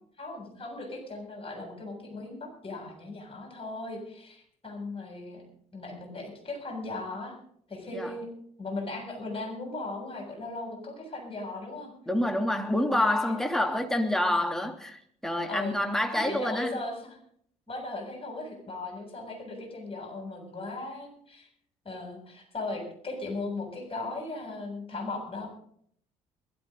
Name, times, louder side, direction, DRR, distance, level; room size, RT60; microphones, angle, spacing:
voice 1, 0.2-5.4 5.7-7.4 7.7-8.3 8.6-11.9 13.0-13.1 15.5-15.8 16.1-17.2 17.7-21.5 21.8-25.5, left 2 dB, 30° left, 7.6 m, -37 dB
voice 2, 12.1-16.7, left 1 dB, ahead, 3.1 m, -27 dB
22.5 x 12.5 x 4.0 m
hypercardioid pair, 50°, 18 cm